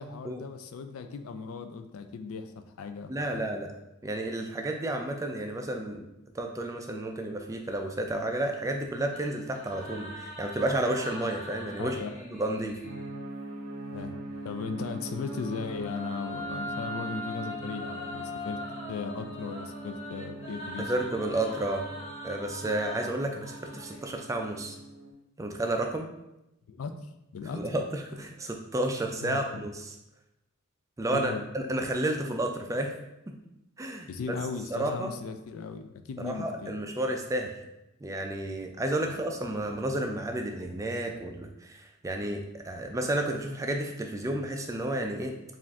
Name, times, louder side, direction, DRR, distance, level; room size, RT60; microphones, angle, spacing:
voice 1, 0.0-3.5 11.8-12.2 13.9-14.2 14.4-18.6 18.9-20.9 26.7-26.9 27.3-27.6 29.2-29.6 31.1-31.5 34.1-36.8 39.0-39.2, left 5 dB, 75° left, 8 dB, 0.4 m, -37 dB
voice 2, 3.1-3.7 4.0-6.1 6.3-12.0 12.2-12.8 20.8-21.8 22.2-24.8 25.4-26.1 27.5-29.9 31.0-32.9 33.8-34.4 34.7-35.1 36.2-37.5 38.0-45.3, right 1 dB, 15° right, 3 dB, 0.3 m, -31 dB
sound 1, 9.1-13.1 14.9-24.4, left 1 dB, 30° left, 0.7 m, -42 dB
sound 2, 12.8-25.1, right 2 dB, 80° right, 0.5 m, -42 dB
4.7 x 2.4 x 3.5 m, 0.89 s
head